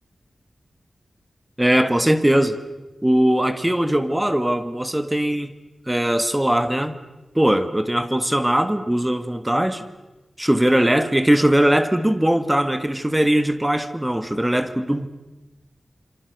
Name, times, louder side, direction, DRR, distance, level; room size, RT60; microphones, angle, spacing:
voice 1, 1.6-2.6 3.0-5.5 5.9-7.0 7.3-9.8 10.4-15.1, right 1 dB, 10° right, 10 dB, 1.6 m, -20 dB
27.5 x 26.0 x 6.7 m, 1.1 s
wide cardioid pair, 100°, 0 cm